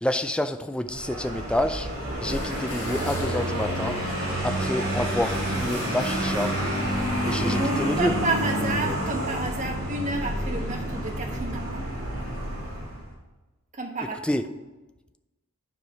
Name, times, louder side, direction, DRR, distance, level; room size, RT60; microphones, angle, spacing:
voice 1, 0.0-1.9 2.2-4.0 4.4-6.5 7.2-8.1 14.2-14.4, left 1 dB, 5° left, 9 dB, 0.3 m, -28 dB
Vehicle, 0.9-13.1, equal, 60° right, 3.4 m, -29 dB
sound 1, 2.2-8.1, left 2 dB, 50° left, 3.2 m, -40 dB
voice 2, 7.4-11.9 13.7-14.2, right 2 dB, 35° right, 3 dB, 1.1 m, -30 dB
9.5 x 5.0 x 5.2 m, 1.1 s
head